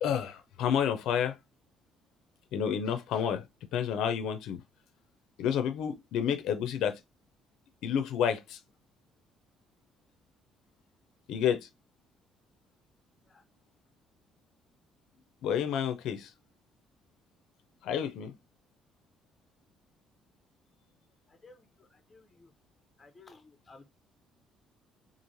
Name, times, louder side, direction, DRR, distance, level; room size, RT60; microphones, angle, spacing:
voice 1, 0.0-1.3 2.5-3.4 3.7-4.6 5.4-7.0 7.8-8.6 11.3-11.7 15.4-16.3 17.8-18.3, left 8 dB, 75° left, 0.4 m, -30 dB
voice 2, 21.3-22.5 23.0-23.9, left 3 dB, 20° left, 0.5 m, -56 dB
3.0 x 2.4 x 2.6 m
cardioid pair, 150°, 0 cm